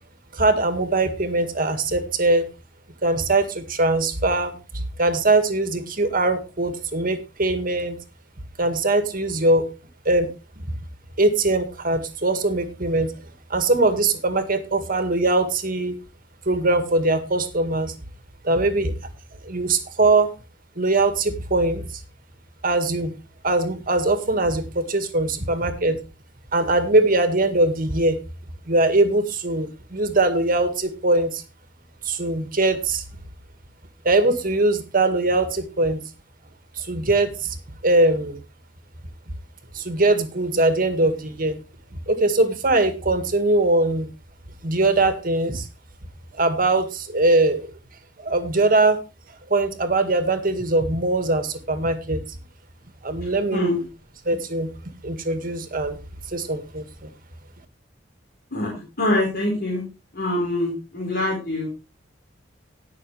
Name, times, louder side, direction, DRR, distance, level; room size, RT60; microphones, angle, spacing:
voice 1, 0.3-2.4 3.0-8.0 8.6-9.6 10.1-10.3 11.2-13.1 13.5-16.0 16.5-17.9 18.4-18.9 19.4-20.3 20.8-21.8 22.6-23.1 23.4-26.0 26.5-28.2 28.7-31.4 32.0-33.0 34.0-36.0 36.8-37.6 37.8-38.4 39.7-41.6 42.1-44.1 44.6-45.7 46.4-47.7 48.2-49.0 49.5-52.2 53.0-53.7 54.3-54.7 55.0-56.0 56.3-57.1, right 2 dB, 50° right, 8 dB, 1.9 m, -21 dB
voice 2, 53.5-53.8 58.5-58.7 59.0-59.8 60.1-61.7, left 1 dB, 55° left, -4 dB, 4.7 m, -24 dB
19.5 x 6.5 x 3.4 m, 0.30 s
head